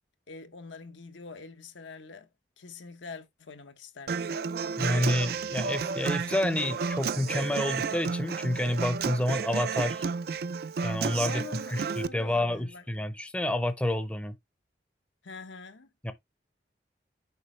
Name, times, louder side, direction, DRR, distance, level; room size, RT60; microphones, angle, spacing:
voice 1, 0.3-2.3 2.6-4.3 11.2-12.8 15.2-15.9, left 4 dB, 85° left, 1.0 m, -45 dB
Human voice / Acoustic guitar, 4.1-12.1, right 5 dB, 55° right, 0.4 m, -32 dB
voice 2, 4.8-10.0 10.8-11.4 11.7-14.3 16.0-16.1, left 1 dB, 5° left, 0.6 m, -29 dB
6.9 x 5.0 x 3.1 m
head